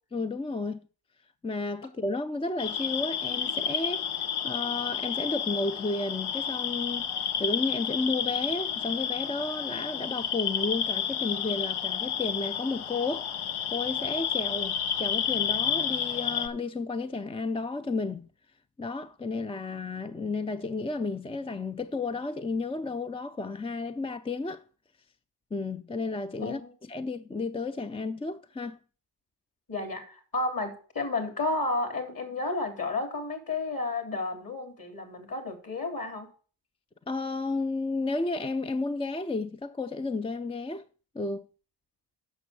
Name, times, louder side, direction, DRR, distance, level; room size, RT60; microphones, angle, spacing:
voice 1, 0.1-0.8 1.4-13.3 13.7-18.3 18.8-24.6 25.5-28.8 37.1-40.8 41.1-41.5, left 3 dB, 10° left, 0.4 m, -32 dB
sound 1, 2.6-16.5, left 8 dB, 75° left, 0.9 m, -31 dB
voice 2, 26.4-26.7 29.7-36.3, left 2 dB, 45° left, 3.2 m, -32 dB
6.9 x 6.3 x 6.8 m
supercardioid pair, 55°, 50 cm